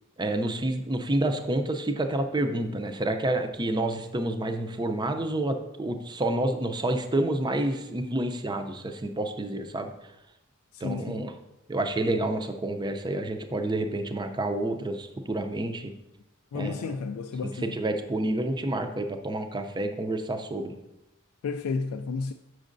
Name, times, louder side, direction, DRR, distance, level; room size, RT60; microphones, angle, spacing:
voice 1, 0.2-9.9 10.8-11.3 11.7-15.9 16.5-16.9 17.6-20.7, right 1 dB, 20° right, 0.5 m, -29 dB
voice 2, 10.7-11.3 16.5-17.8 21.4-22.3, left 4 dB, 85° left, 0.3 m, -32 dB
7.6 x 6.2 x 2.6 m
head